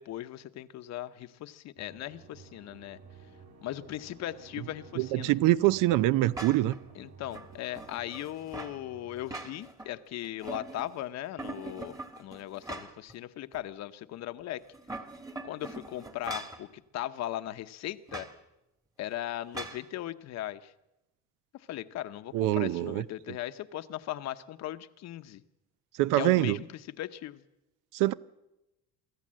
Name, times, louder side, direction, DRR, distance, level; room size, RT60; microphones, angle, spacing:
voice 1, 0.0-3.0 3.6-5.3 6.9-14.6 15.4-18.3 19.0-20.7 21.5-25.4 26.1-27.4, left 13 dB, 60° left, 0.9 m, -38 dB
sound 1, 1.8-9.5, right 5 dB, 60° right, 3.8 m, -54 dB
voice 2, 5.0-6.7 22.3-23.0 26.0-26.6 27.9-28.1, right 16 dB, 80° right, 0.6 m, -24 dB
sound 2, 6.3-6.8 7.3-8.8 9.2-9.9 10.2-11.0 11.4-13.1 13.5-13.6 14.6-16.6 18.1-18.3 19.5-19.8, right 2 dB, 10° right, 1.4 m, -42 dB
24.0 x 14.5 x 7.6 m
cardioid pair, 145°, 31 cm